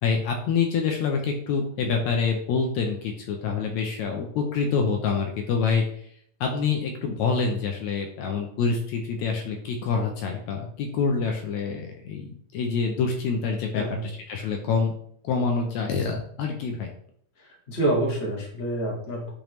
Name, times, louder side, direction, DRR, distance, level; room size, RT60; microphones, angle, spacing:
voice 1, 0.0-5.8 6.4-14.9 15.2-16.9, left 5 dB, 75° left, 2 dB, 1.8 m, -26 dB
voice 2, 13.7-14.1 17.4-19.3, right 1 dB, 35° left, -2 dB, 1.1 m, -27 dB
8.8 x 3.5 x 3.0 m, 0.64 s
omnidirectional pair, 3.5 m